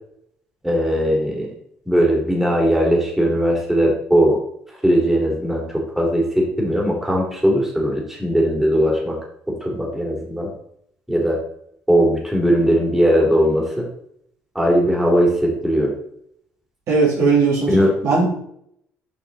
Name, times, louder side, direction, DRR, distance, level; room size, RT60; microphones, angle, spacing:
voice 1, 0.6-1.5 1.9-4.4 4.8-5.6 6.0-9.1 9.5-10.5 11.1-11.4 11.9-13.8 14.5-15.9 17.7-17.9, equal, 5° right, -1 dB, 3.0 m, -18 dB
voice 2, 16.9-17.7 18.0-18.3, right 4 dB, 65° right, -3 dB, 3.3 m, -17 dB
7.0 x 5.3 x 4.0 m, 0.69 s
supercardioid pair, 65°, 5 cm